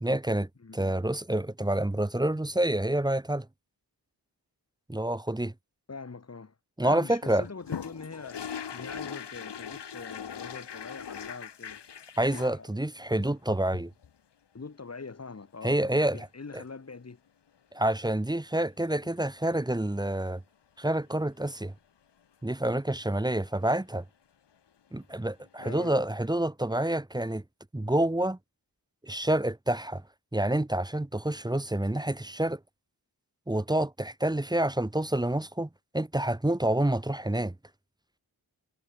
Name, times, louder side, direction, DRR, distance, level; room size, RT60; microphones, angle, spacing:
voice 1, 0.0-3.5 4.9-5.5 6.8-7.5 12.2-13.9 15.6-16.3 16.5-16.6 17.7-20.4 20.8-21.7 22.4-24.0 24.9-27.4 27.7-28.4 29.0-30.0 30.3-32.6 33.5-35.7 35.9-37.5, right 1 dB, 10° right, 1.1 m, -28 dB
voice 2, 0.6-1.0 5.9-6.5 6.8-11.8 12.6-12.8 14.5-17.2 25.6-25.9, left 4 dB, 40° left, 3.2 m, -43 dB
sound 1, 7.4-12.6 13.1-14.1 16.2-16.3 16.5-16.6 18.9-19.1 25.0-25.1 25.4-25.5, left 7 dB, 85° left, 2.4 m, -40 dB
wide cardioid pair, 110°, 40 cm